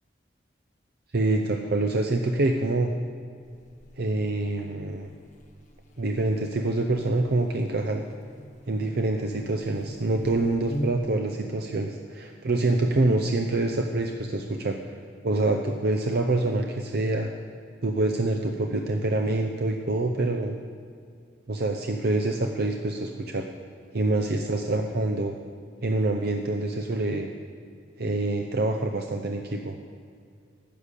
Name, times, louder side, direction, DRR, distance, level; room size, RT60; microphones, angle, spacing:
voice 1, 1.1-2.9 4.0-5.1 6.0-8.0 8.7-17.3 17.8-20.6 21.5-23.4 23.9-25.3 25.8-27.3 28.0-29.7, right 2 dB, 55° right, 4 dB, 0.7 m, -26 dB
Buzz, 3.4-11.2, equal, 40° left, 1.2 m, -43 dB
12.5 x 6.7 x 8.3 m, 2.3 s
head